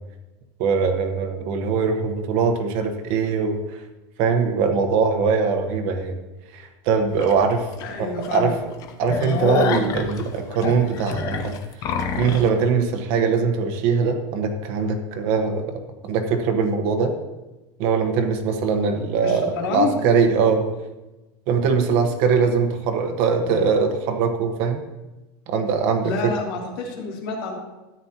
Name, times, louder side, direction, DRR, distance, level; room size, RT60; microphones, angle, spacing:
voice 1, 0.6-3.8 4.2-6.2 6.5-7.7 8.0-8.5 9.0-17.1 17.8-20.7 21.5-24.8 25.5-26.3, right 5 dB, 45° right, 6 dB, 1.1 m, -22 dB
sound 1, 7.2-7.3 7.8-7.9 8.2-8.4 8.7-12.5, left 6 dB, 30° left, 0.7 m, -26 dB
voice 2, 7.8-8.5 19.2-19.9 26.0-27.6, left 4 dB, 80° left, -2 dB, 3.0 m, -28 dB
13.5 x 9.7 x 2.9 m, 1.1 s
supercardioid pair, 175°, 12 cm